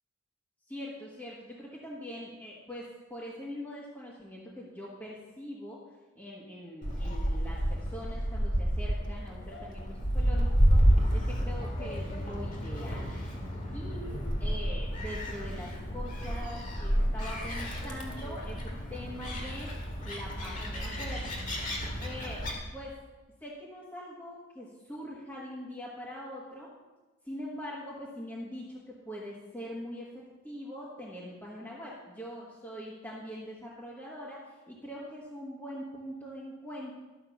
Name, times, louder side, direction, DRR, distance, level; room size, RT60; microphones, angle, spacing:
voice 1, 0.7-5.8 6.2-13.1 13.7-19.7 20.0-21.2 22.0-23.0 23.4-26.7 27.2-30.1 30.4-37.0, equal, 10° left, -6 dB, 1.3 m, -43 dB
Gull seagull, 6.8-22.5, equal, 35° left, 2.0 m, -30 dB
12.5 x 5.8 x 6.9 m, 1.2 s
head